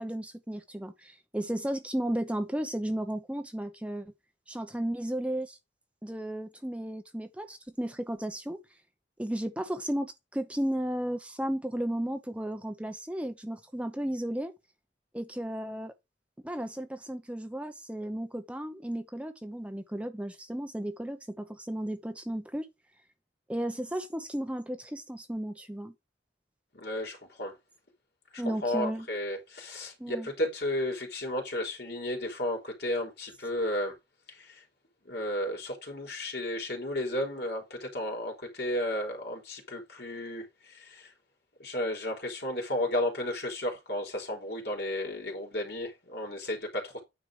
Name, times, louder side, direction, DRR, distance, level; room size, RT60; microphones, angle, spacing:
voice 1, 0.0-4.1 4.5-5.6 6.0-8.6 9.2-14.5 15.1-15.9 16.4-22.7 23.5-25.9 28.4-29.1 30.0-30.3, right 1 dB, 5° right, 0.8 m, -34 dB
voice 2, 26.7-27.6 28.3-33.9 34.3-34.6 35.1-41.1 41.6-47.0, left 1 dB, 60° left, 3.7 m, -33 dB
9.6 x 5.1 x 4.9 m
head